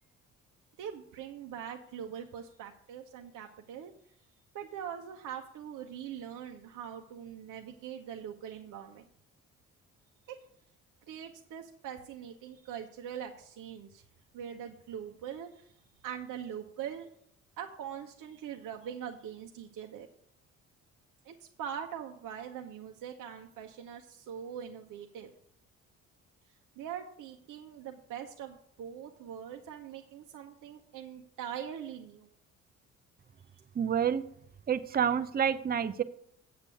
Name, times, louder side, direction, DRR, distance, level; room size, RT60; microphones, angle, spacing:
voice 1, 0.8-3.9 4.5-9.1 10.3-10.4 11.1-14.0 14.3-15.7 16.0-17.1 17.6-20.1 21.2-25.3 26.8-32.3, right 9 dB, 50° right, 3 dB, 0.9 m, -42 dB
voice 2, 33.8-34.2 34.7-36.0, right 8 dB, 25° right, 13 dB, 0.6 m, -28 dB
8.3 x 6.0 x 6.7 m, 0.69 s
figure-of-eight pair, 40°, 40 cm